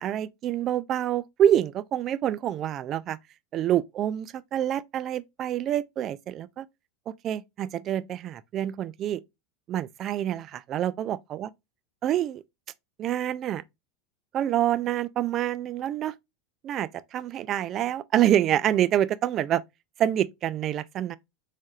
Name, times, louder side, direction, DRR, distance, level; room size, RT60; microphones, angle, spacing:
voice 1, 0.0-3.2 3.5-6.7 7.2-9.2 9.7-11.5 12.0-12.4 13.0-13.6 14.3-16.1 16.6-19.6 20.0-21.2, right 11 dB, 40° right, 0.3 m, -27 dB
4.1 x 3.3 x 2.4 m
hypercardioid pair, 90°, 0 cm